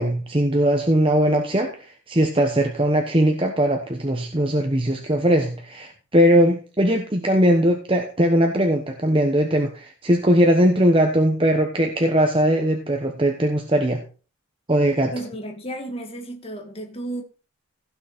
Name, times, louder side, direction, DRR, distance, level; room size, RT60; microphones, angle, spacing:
voice 1, 0.0-14.0 14.7-15.1, equal, 25° right, 1.1 m, -20 dB
voice 2, 15.1-17.2, right 1 dB, 25° left, 2.0 m, -33 dB
16.0 x 6.2 x 4.2 m
head